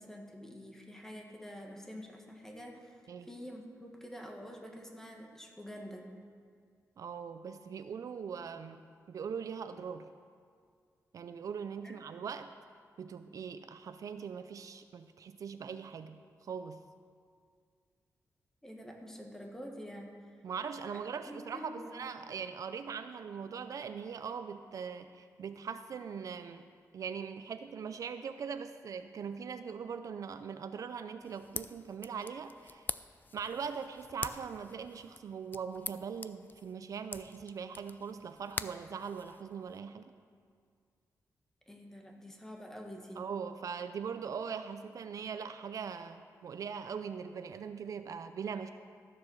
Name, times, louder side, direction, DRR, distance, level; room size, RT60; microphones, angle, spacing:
voice 1, 0.0-3.0 3.2-6.1 11.8-12.0 18.6-20.1 20.9-22.0 41.7-43.2, equal, 5° left, 1 dB, 1.6 m, -47 dB
voice 2, 7.0-8.8 9.1-10.1 11.1-12.5 13.0-16.8 20.4-26.7 26.9-32.9 33.3-40.1 43.2-48.7, right 6 dB, 65° right, 10 dB, 0.5 m, -41 dB
sound 1, 31.2-39.8, left 4 dB, 30° left, 0.3 m, -45 dB
13.5 x 7.5 x 6.3 m, 2.1 s
wide cardioid pair, 135°, 6 cm